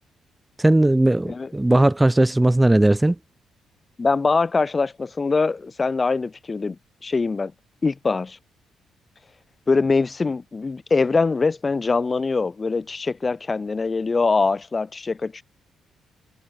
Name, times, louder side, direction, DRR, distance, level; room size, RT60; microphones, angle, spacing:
voice 1, 0.6-3.2, right 1 dB, 10° right, 0.6 m, -17 dB
voice 2, 4.0-6.8 7.0-7.5 7.8-8.4 9.7-15.4, left 4 dB, 30° left, 0.9 m, -23 dB
cardioid pair, 90°, 0 cm